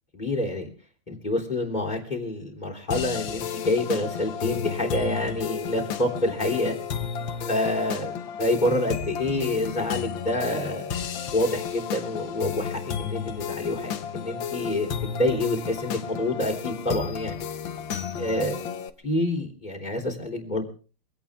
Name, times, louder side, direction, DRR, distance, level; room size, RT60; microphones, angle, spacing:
voice 1, 0.1-0.7 1.1-6.7 7.5-10.8 11.3-17.4 18.2-18.6 19.0-20.6, left 1 dB, 20° left, 1 dB, 3.6 m, -27 dB
sound 1, 2.9-18.9, left 7 dB, 65° left, 1.8 m, -33 dB
23.5 x 17.0 x 3.6 m, 0.38 s
omnidirectional pair, 2.4 m